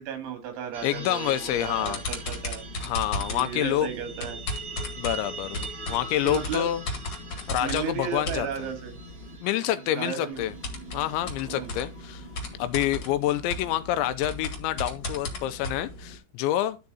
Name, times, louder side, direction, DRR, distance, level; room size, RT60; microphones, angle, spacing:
voice 1, 0.0-2.9 3.2-4.4 6.2-6.7 7.6-9.0 10.0-10.4 11.4-11.8, right 8 dB, 75° right, 4.4 m, -35 dB
sound 1, 0.7-13.3, right 4 dB, 40° right, 2.5 m, -43 dB
voice 2, 0.8-2.0 2.8-3.9 5.0-6.8 7.5-8.5 9.4-10.5 10.9-12.3 12.6-16.8, left 13 dB, 85° left, 2.8 m, -27 dB
sound 2, 1.5-9.4 10.3-16.2, left 2 dB, 45° left, 2.3 m, -36 dB
12.0 x 4.8 x 4.1 m
omnidirectional pair, 5.5 m